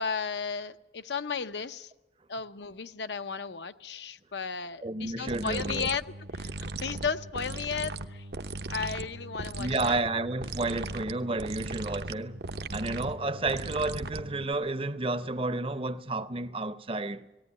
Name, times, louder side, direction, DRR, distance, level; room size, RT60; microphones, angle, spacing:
voice 1, 0.0-1.9 2.3-8.3 8.7-10.0, left 5 dB, 80° left, 0.8 m, -34 dB
voice 2, 4.8-5.9 9.6-12.4 12.7-17.3, right 2 dB, 30° right, 0.7 m, -31 dB
sound 1, 5.3-14.5, right 3 dB, 65° right, 0.8 m, -38 dB
18.5 x 16.5 x 9.7 m
head